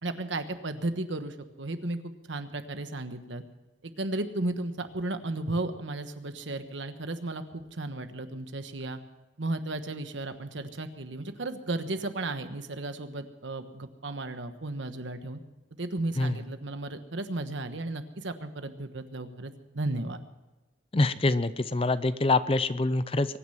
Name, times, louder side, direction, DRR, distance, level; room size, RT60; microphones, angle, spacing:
voice 1, 0.0-3.4 3.8-9.0 9.4-15.4 15.8-20.2, right 2 dB, 80° right, 9 dB, 1.3 m, -34 dB
voice 2, 20.9-23.4, left 2 dB, 30° left, 14 dB, 0.6 m, -25 dB
23.0 x 9.9 x 5.8 m, 1.1 s
head